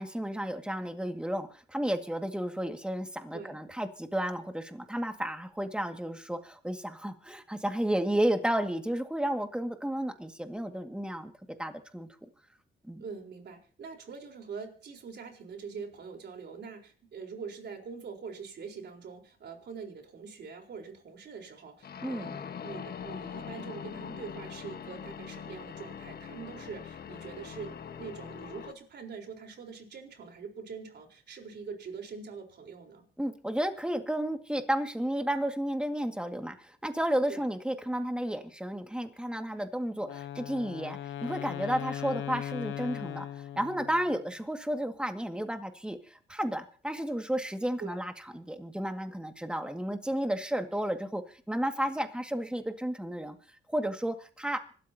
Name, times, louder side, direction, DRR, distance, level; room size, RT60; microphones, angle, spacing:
voice 1, 0.0-11.3 11.6-12.1 12.8-13.0 22.0-22.4 33.2-43.3 43.6-53.4 53.7-54.6, right 1 dB, 5° right, 5 dB, 2.0 m, -32 dB
voice 2, 13.0-22.4 22.6-33.0 37.3-37.4 47.8-48.0, right 5 dB, 60° right, 2 dB, 4.2 m, -44 dB
sound 1, 21.8-28.7, left 7 dB, 50° left, 1.4 m, -42 dB
Wind instrument woodwind instrument, 40.0-44.2, left 11 dB, 80° left, 0.9 m, -39 dB
25.5 x 13.0 x 2.9 m, 0.42 s
cardioid pair, 90°, 20 cm